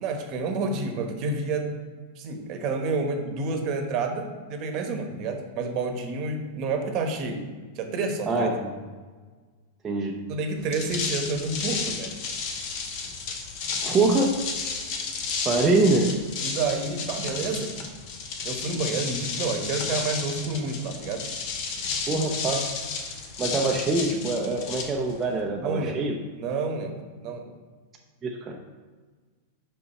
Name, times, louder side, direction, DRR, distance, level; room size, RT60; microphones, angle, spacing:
voice 1, 0.0-1.7 2.2-7.4 7.7-8.5 10.3-12.1 15.5-15.6 16.4-17.7 18.4-21.3 25.6-26.0 26.3-27.5, right 3 dB, 45° right, 5 dB, 1.1 m, -29 dB
sound 1, 10.6-25.4, left 5 dB, 55° left, 1.0 m, -32 dB
voice 2, 13.8-14.3 15.5-16.1 22.1-22.7 23.4-26.2 28.2-28.5, right 3 dB, 20° right, -1 dB, 0.6 m, -24 dB
5.5 x 5.4 x 4.2 m, 1.5 s
hypercardioid pair, 130°, 0 cm